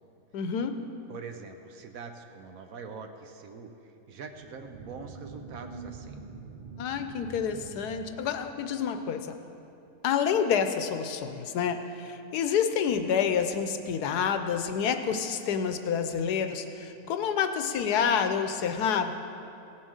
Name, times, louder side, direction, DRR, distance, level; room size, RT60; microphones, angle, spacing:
voice 1, 0.3-0.8 6.8-9.4 10.0-19.1, left 7 dB, 90° left, 8 dB, 1.3 m, -28 dB
voice 2, 1.1-6.2, right 5 dB, 65° right, 6 dB, 1.2 m, -43 dB
sound 1, 4.3-9.2, right 4 dB, 45° right, 0.6 m, -46 dB
16.5 x 7.3 x 6.4 m, 2.8 s
omnidirectional pair, 1.7 m